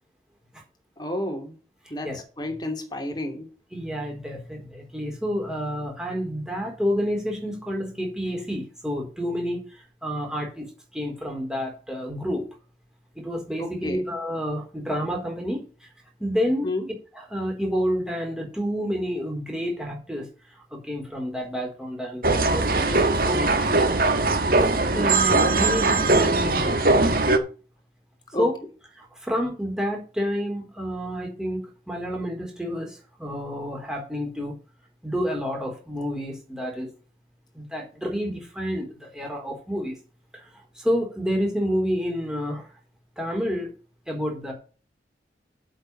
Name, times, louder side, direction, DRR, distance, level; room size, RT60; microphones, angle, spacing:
voice 1, 1.0-1.5 1.9-3.5 13.6-14.0 16.6-16.9 28.3-28.4, left 1 dB, 25° left, 4 dB, 2.9 m, -31 dB
voice 2, 3.7-12.5 13.1-15.9 16.2-16.7 17.1-23.9 24.6-24.7 24.9-26.8 28.4-28.6 28.9-34.6 35.0-36.9 37.5-40.0 40.3-42.7 43.2-43.7 44.1-44.5, equal, 5° right, 0 dB, 4.2 m, -29 dB
sound 1, 22.2-27.4, right 2 dB, 55° right, 1.5 m, -20 dB
8.0 x 6.7 x 7.4 m, 0.36 s
head